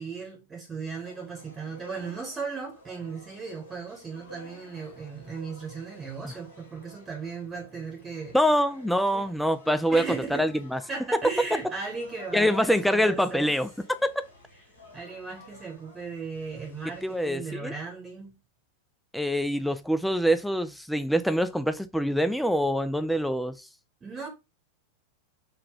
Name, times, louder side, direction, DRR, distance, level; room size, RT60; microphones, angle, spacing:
voice 1, 0.0-8.4 9.1-9.3 9.9-10.5 10.9-13.5 14.9-18.4 24.0-24.3, right 4 dB, 20° right, 1.0 m, -37 dB
sound 1, 1.0-17.3, left 1 dB, 70° left, 1.5 m, -51 dB
voice 2, 8.3-10.0 10.3-10.8 12.3-13.7 17.0-17.7 19.1-23.7, equal, ahead, 0.3 m, -25 dB
3.7 x 2.2 x 3.7 m
figure-of-eight pair, 90°, 0 cm